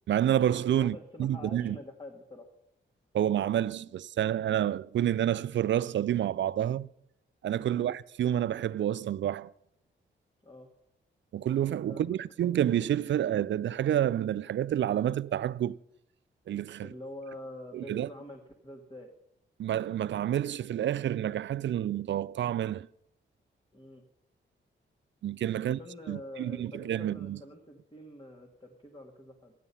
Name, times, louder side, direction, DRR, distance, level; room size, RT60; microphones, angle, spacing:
voice 1, 0.1-1.8 3.1-6.9 7.4-9.5 11.3-15.8 16.5-16.9 17.7-18.1 19.6-22.9 25.2-25.8 26.1-27.4, right 11 dB, 65° right, 0.4 m, -29 dB
voice 2, 0.8-2.5 7.7-8.0 10.4-10.7 11.9-12.2 16.8-19.1 23.7-24.1 25.6-29.5, left 1 dB, 25° left, 1.6 m, -46 dB
12.5 x 10.0 x 5.6 m
cardioid pair, 60°, 21 cm